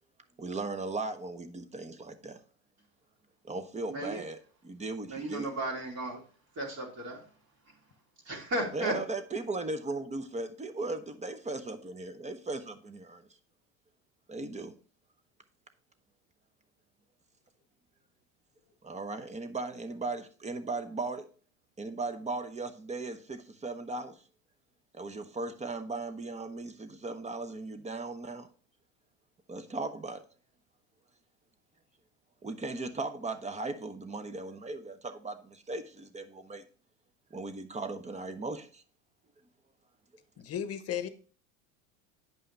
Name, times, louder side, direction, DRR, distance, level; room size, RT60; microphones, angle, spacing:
voice 1, 0.4-2.4 3.4-5.5 8.7-13.2 14.3-14.7 18.8-21.3 21.8-24.2 24.9-28.5 29.5-30.2 32.4-36.6 37.3-38.8, right 3 dB, 15° right, 0.9 m, -37 dB
voice 2, 3.9-4.2 5.1-6.2 6.6-7.2 8.3-8.9, right 1 dB, 40° right, 2.7 m, -34 dB
voice 3, 40.4-41.1, left 9 dB, 35° left, 1.0 m, -34 dB
9.2 x 5.5 x 3.3 m
hypercardioid pair, 85°, 41 cm